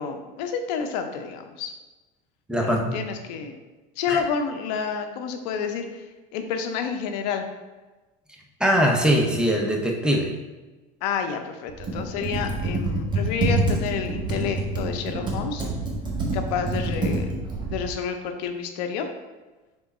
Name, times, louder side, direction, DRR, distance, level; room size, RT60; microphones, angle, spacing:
voice 1, 0.0-1.7 2.6-3.6 4.0-7.5 11.0-15.6 16.3-17.3 17.7-19.1, left 6 dB, 85° left, 6 dB, 0.6 m, -29 dB
voice 2, 2.5-3.0 4.1-4.2 8.6-10.3, equal, 5° right, 0 dB, 0.7 m, -21 dB
Computer keyboard, 11.7-17.8, right 2 dB, 20° right, 1.2 m, -27 dB
3.7 x 3.4 x 4.1 m, 1.2 s
supercardioid pair, 110°, 21 cm